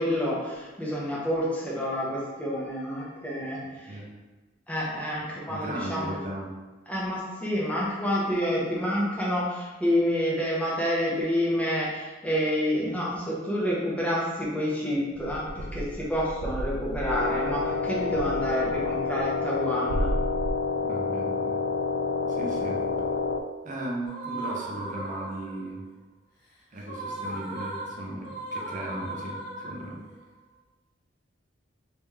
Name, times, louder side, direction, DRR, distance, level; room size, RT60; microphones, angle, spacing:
voice 1, 0.0-3.6 4.7-6.2 6.9-20.1, equal, 5° left, -6 dB, 0.9 m, -28 dB
voice 2, 5.5-6.5 20.8-21.6 22.3-22.9 23.6-25.8 26.7-30.0, right 1 dB, 40° right, -2 dB, 0.7 m, -36 dB
sound 1, 15.1-19.6 19.9-20.5, right 1 dB, 90° right, 0.4 m, -34 dB
sound 2, 17.1-23.4, left 4 dB, 85° left, 0.4 m, -28 dB
sound 3, 24.0-25.7 26.8-30.2, right 2 dB, 55° left, 1.1 m, -37 dB
3.4 x 3.4 x 3.2 m, 1.2 s
head